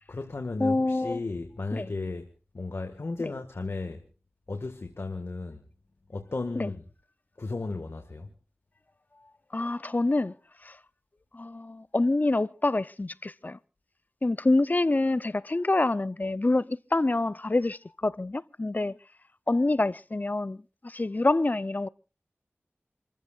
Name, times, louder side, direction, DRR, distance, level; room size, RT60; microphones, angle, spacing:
voice 1, 0.1-2.3 2.5-4.0 4.5-5.6 6.1-6.8 7.4-8.3, left 3 dB, 70° left, 1.8 m, -34 dB
voice 2, 0.6-1.2 1.7-1.9 3.2-3.3 6.6-6.7 9.5-10.4 10.6-10.8 11.3-13.6 14.2-19.0 19.5-21.9, left 2 dB, 40° left, 0.7 m, -26 dB
28.0 x 14.5 x 2.5 m
wide cardioid pair, 45°, 4 cm